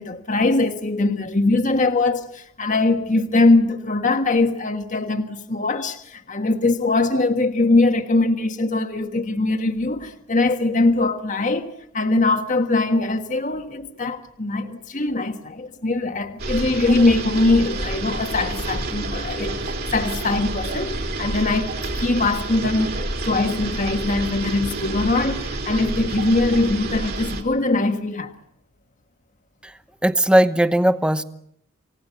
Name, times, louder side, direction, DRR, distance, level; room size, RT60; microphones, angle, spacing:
voice 1, 0.0-19.6 19.9-28.3, left 2 dB, 35° left, 1.5 m, -21 dB
sound 1, 16.4-27.4, right 2 dB, 45° right, 3.9 m, -29 dB
voice 2, 30.0-31.2, right 1 dB, 5° right, 0.9 m, -18 dB
28.5 x 18.0 x 8.4 m
head